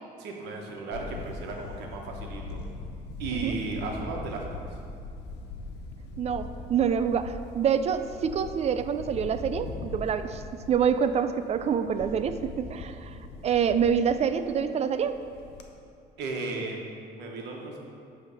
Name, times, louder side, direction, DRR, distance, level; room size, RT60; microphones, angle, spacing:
voice 1, 0.2-2.6 3.2-4.7 16.2-17.8, right 3 dB, 85° right, 1 dB, 1.1 m, -35 dB
Camera, 0.9-15.7, left 3 dB, 80° left, 0.7 m, -41 dB
voice 2, 6.2-10.4 10.7-13.1 13.4-15.2, right 7 dB, 40° right, 10 dB, 0.3 m, -26 dB
8.9 x 3.4 x 6.3 m, 2.5 s
cardioid pair, 110°, 17 cm